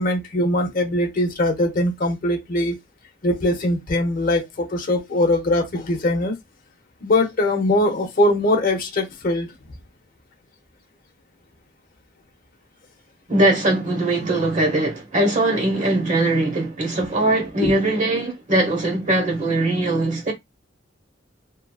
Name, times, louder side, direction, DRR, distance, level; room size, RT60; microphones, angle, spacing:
voice 1, 0.0-2.7 3.2-6.3 7.0-9.5 17.6-17.7, left 1 dB, 45° left, 0.8 m, -21 dB
voice 2, 13.3-20.3, right 2 dB, 40° right, 1.0 m, -21 dB
2.9 x 2.6 x 2.3 m
head